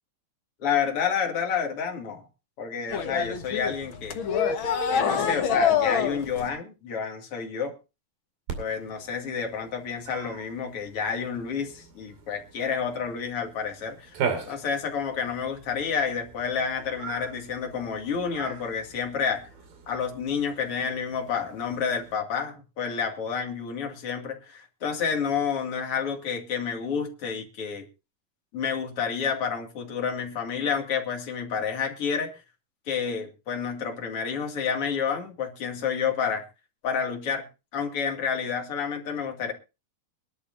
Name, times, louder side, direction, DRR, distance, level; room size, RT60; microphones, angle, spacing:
voice 1, 0.6-2.2 2.6-4.2 4.9-7.7 8.6-14.2 14.5-19.5 19.9-27.9 28.5-32.4 32.9-36.4 36.8-37.4 37.7-39.5, left 6 dB, 40° left, 2 dB, 2.8 m, -29 dB
sound 1, 2.9-6.5, left 7 dB, 60° left, 1.3 m, -26 dB
Cat, 8.5-22.1, right 6 dB, 70° right, 4.2 m, -40 dB
23.0 x 11.5 x 2.6 m, 0.29 s
omnidirectional pair, 4.3 m